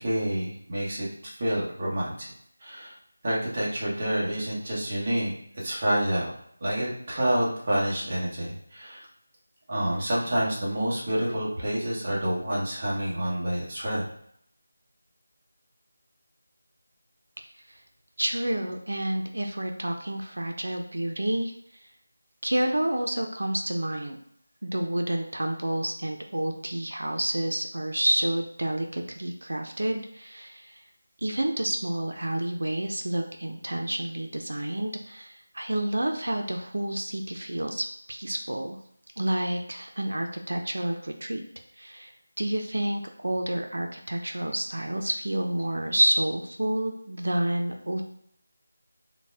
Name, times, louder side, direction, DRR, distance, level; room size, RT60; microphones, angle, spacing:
voice 1, 0.0-2.3 2.6-3.0 3.2-6.3 6.6-9.1 9.7-14.0, right 1 dB, 30° right, -6 dB, 1.0 m, -28 dB
voice 2, 18.2-21.9 22.4-24.2 24.6-30.8 31.2-38.8 39.2-41.4 41.8-48.0, right 1 dB, 85° right, 4 dB, 0.5 m, -29 dB
4.0 x 2.1 x 3.4 m, 0.69 s
figure-of-eight pair, 175°, 0 cm